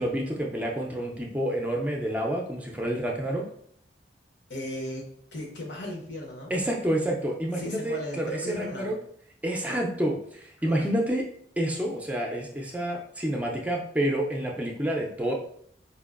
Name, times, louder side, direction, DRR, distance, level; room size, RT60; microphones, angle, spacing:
voice 1, 0.0-3.4 6.5-9.0 9.4-11.2 11.6-15.3, right 1 dB, 10° right, -1 dB, 0.4 m, -28 dB
voice 2, 4.5-6.5 7.6-8.9 10.6-10.9, left 1 dB, 85° left, 0 dB, 0.9 m, -36 dB
4.5 x 2.5 x 2.4 m, 0.66 s
head